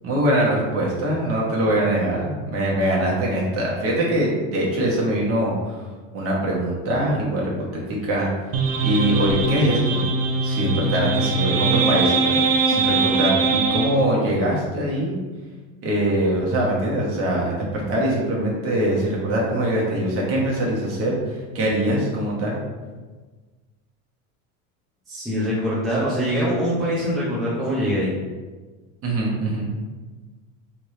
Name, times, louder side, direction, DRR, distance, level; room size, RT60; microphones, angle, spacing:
voice 1, 0.0-5.9 6.1-8.3 8.8-10.0 10.4-15.2 15.8-22.6 29.0-29.7, right 1 dB, 35° right, -4 dB, 1.2 m, -23 dB
sound 1, 8.5-13.9, right 4 dB, 90° right, 0.9 m, -21 dB
voice 2, 25.1-28.1, equal, ahead, -10 dB, 0.6 m, -23 dB
3.5 x 3.3 x 4.2 m, 1.3 s
supercardioid pair, 160°, 41 cm